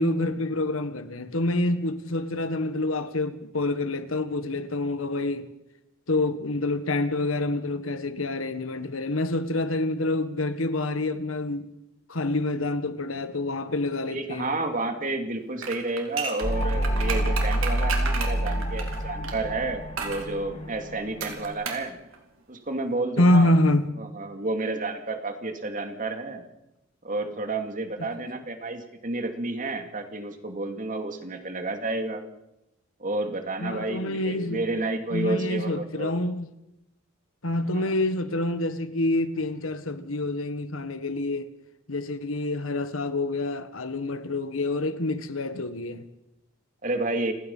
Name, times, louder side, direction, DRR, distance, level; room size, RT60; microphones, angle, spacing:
voice 1, 0.0-5.5 6.1-11.7 12.1-14.5 23.2-23.9 33.6-34.6 35.1-36.5 37.4-41.5 41.9-46.0, left 2 dB, 90° left, 1.6 m, -27 dB
voice 2, 14.1-22.0 22.5-23.5 24.0-26.4 27.0-32.2 33.0-36.1 37.7-37.9 46.8-47.3, right 2 dB, 40° right, 2.5 m, -31 dB
sound 1, 15.6-19.4 20.0-20.3 21.2-21.9 22.1-22.2, right 5 dB, 80° right, 3.9 m, -33 dB
sound 2, 16.4-21.5, right 1 dB, 35° left, 6.2 m, -28 dB
29.5 x 16.5 x 5.6 m
head